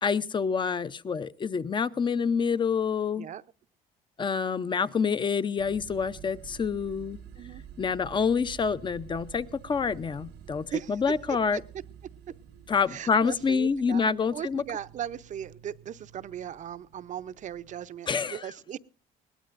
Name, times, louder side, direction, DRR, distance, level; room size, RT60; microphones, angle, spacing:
voice 1, 0.0-3.3 4.2-7.2 7.8-11.6 12.7-14.6 18.1-18.4, left 5 dB, 30° left, 15 dB, 0.6 m, -27 dB
sound 1, 5.6-17.9, right 9 dB, 85° right, 1.4 m, -50 dB
voice 2, 10.7-11.0 11.5-11.6 12.9-18.8, right 9 dB, 45° right, 14 dB, 0.6 m, -38 dB
21.0 x 18.0 x 2.5 m, 0.35 s
cardioid pair, 110°, 17 cm